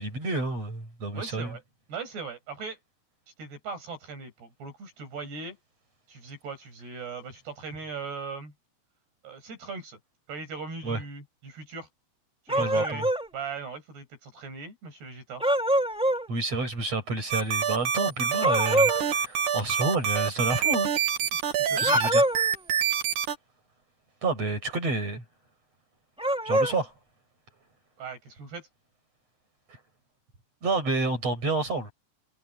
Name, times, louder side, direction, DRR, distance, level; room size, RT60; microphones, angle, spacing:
voice 1, 0.0-1.5 10.8-11.0 12.6-13.1 16.3-20.9 21.8-22.2 24.2-25.2 26.5-26.9 30.6-31.9, right 3 dB, 40° right, 8.6 m, -29 dB
voice 2, 1.1-1.6 1.9-2.8 3.4-5.6 6.1-8.5 9.2-10.0 10.3-11.9 12.5-13.1 13.3-15.4 21.6-22.0 28.0-28.7, right 4 dB, 85° right, 10.0 m, -39 dB
sound 1, 12.5-13.3 15.4-16.3 18.4-19.0 21.8-22.5 26.2-26.8, right 1 dB, 5° right, 1.0 m, -24 dB
sound 2, 17.3-23.3, right 8 dB, 55° right, 3.1 m, -26 dB
omnidirectional pair, 4.6 m